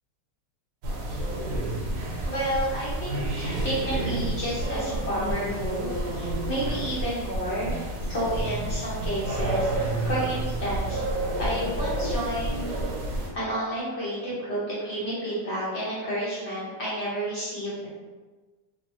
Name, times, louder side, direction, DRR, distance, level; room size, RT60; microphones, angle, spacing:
sound 1, 0.8-13.3, right 1 dB, 80° right, 1.3 m, -30 dB
voice 1, 2.2-9.7 10.0-11.0 11.4-12.8 13.3-17.9, right 1 dB, 55° left, -8 dB, 0.8 m, -30 dB
3.2 x 2.3 x 2.9 m, 1.3 s
omnidirectional pair, 1.8 m